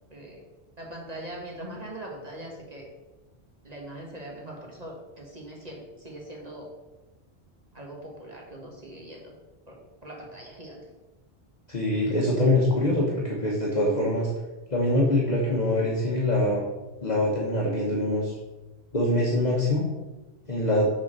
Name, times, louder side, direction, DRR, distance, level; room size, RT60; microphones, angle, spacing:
voice 1, 0.1-0.4 0.8-2.9 3.6-6.7 7.7-9.3 9.7-10.8, right 1 dB, 35° right, -1 dB, 1.6 m, -41 dB
voice 2, 11.7-14.3 14.7-16.6 17.0-18.4 18.9-19.9 20.5-20.9, left 1 dB, 40° left, -4 dB, 1.3 m, -24 dB
6.8 x 4.4 x 6.6 m, 1.1 s
omnidirectional pair, 1.1 m